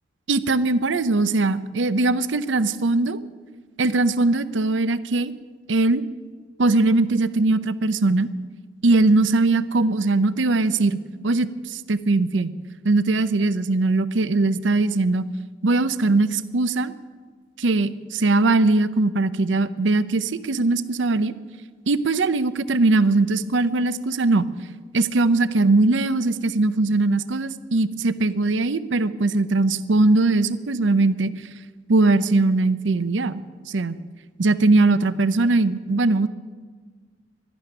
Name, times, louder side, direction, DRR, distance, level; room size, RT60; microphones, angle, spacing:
voice 1, 0.3-3.2 3.8-5.3 5.7-6.0 6.6-8.3 8.8-11.0 11.2-12.5 12.8-15.2 15.6-16.9 17.6-21.3 21.9-24.5 24.9-31.3 31.9-33.4 33.7-34.0 34.4-36.3, right 2 dB, 80° right, 15 dB, 0.7 m, -20 dB
12.5 x 11.5 x 10.0 m, 1.4 s
head